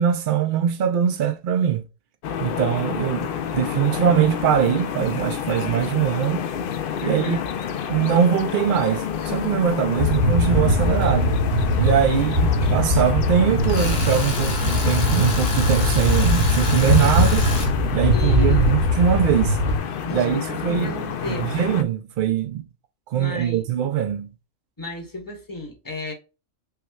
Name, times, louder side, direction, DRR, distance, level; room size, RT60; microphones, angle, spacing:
voice 1, 0.0-1.8 2.4-6.5 7.0-7.4 7.9-11.4 11.8-17.5 17.9-19.6 20.1-20.9 21.3-22.6 23.1-24.3, right 9 dB, 75° right, 0.4 m, -22 dB
sound 1, 2.2-21.8, left 8 dB, 65° left, 0.5 m, -29 dB
voice 2, 7.0-7.4 18.1-18.7 20.0-21.5 23.1-23.6 24.8-26.1, left 1 dB, 15° left, 0.9 m, -33 dB
sound 2, 10.0-19.8, left 1 dB, 40° right, 0.6 m, -21 dB
Tools, 13.6-17.7, left 3 dB, 50° left, 1.2 m, -30 dB
5.6 x 2.2 x 2.2 m
omnidirectional pair, 1.4 m